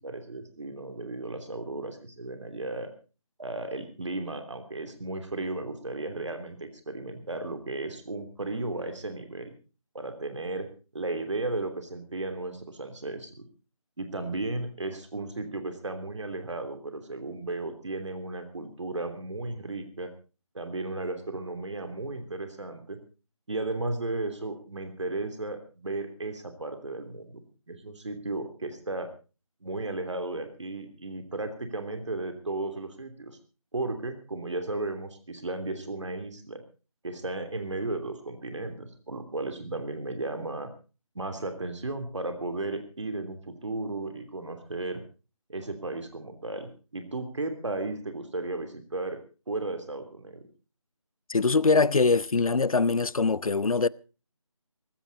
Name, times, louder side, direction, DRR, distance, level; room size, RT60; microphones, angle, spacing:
voice 1, 0.0-2.9 3.4-9.5 9.9-10.7 10.9-13.5 14.0-20.1 20.5-23.0 23.5-27.4 27.7-29.1 29.6-33.4 33.7-36.6 37.0-40.7 41.1-45.0 45.5-49.2 49.5-50.5, right 2 dB, 60° right, 3.1 m, -34 dB
voice 2, 51.3-53.9, left 4 dB, 85° left, 0.7 m, -23 dB
18.5 x 15.5 x 4.1 m
figure-of-eight pair, 170°, 18 cm